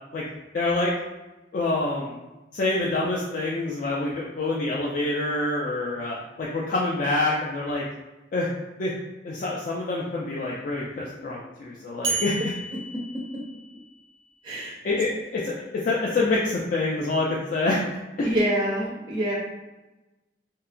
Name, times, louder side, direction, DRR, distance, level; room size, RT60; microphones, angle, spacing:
voice 1, 0.5-0.9 1.5-2.2 2.5-7.9 8.3-8.5 8.8-8.9 9.2-12.4 14.8-17.8 18.2-18.3, left 2 dB, 45° left, -4 dB, 0.3 m, -26 dB
sound 1, 12.0-14.1, right 3 dB, 80° right, 0.4 m, -32 dB
voice 2, 14.4-14.8 18.2-19.3, right 1 dB, 25° right, -5 dB, 0.4 m, -26 dB
2.7 x 2.2 x 2.4 m, 1.1 s
head